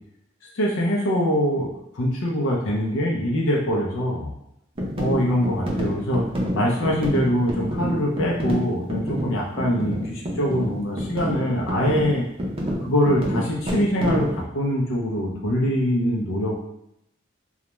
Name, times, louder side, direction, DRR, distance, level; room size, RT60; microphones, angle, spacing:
voice 1, 0.5-1.7 1.9-4.3 4.9-6.2 6.5-12.2 12.8-16.6, equal, 85° left, -2 dB, 0.5 m, -23 dB
sound 1, 4.8-14.4, equal, 30° right, 0.4 m, -28 dB
2.3 x 2.1 x 2.9 m, 0.78 s
head